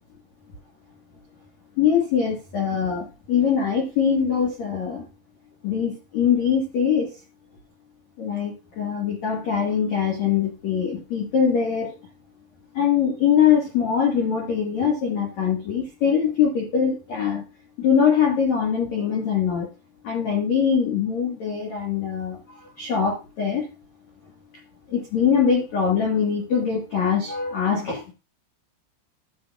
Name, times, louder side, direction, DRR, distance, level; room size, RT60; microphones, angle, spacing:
voice 1, 1.8-5.0 5.6-7.1 8.2-11.9 12.7-17.4 17.8-19.7 20.0-23.7 24.9-28.1, left 7 dB, 65° left, -1 dB, 1.7 m, -22 dB
12.5 x 7.6 x 2.3 m, 0.30 s
omnidirectional pair, 5.7 m